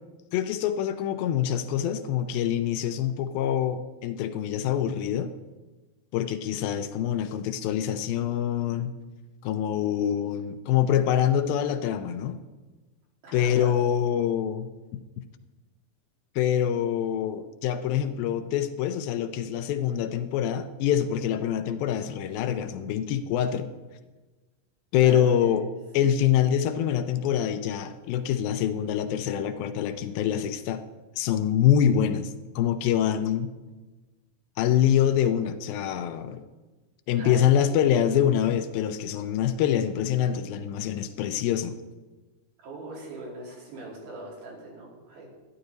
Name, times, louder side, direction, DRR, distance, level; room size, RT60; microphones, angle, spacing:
voice 1, 0.3-5.3 6.1-8.9 9.4-12.4 13.3-14.7 16.4-23.7 24.9-25.6 25.9-30.8 31.2-33.5 34.6-36.4 37.1-41.8, left 10 dB, 80° left, 9 dB, 2.3 m, -25 dB
voice 2, 13.2-13.7 25.0-25.7 37.2-37.6 42.6-45.3, right 2 dB, 75° right, -3 dB, 4.6 m, -40 dB
12.5 x 10.5 x 4.0 m, 1.2 s
omnidirectional pair, 4.2 m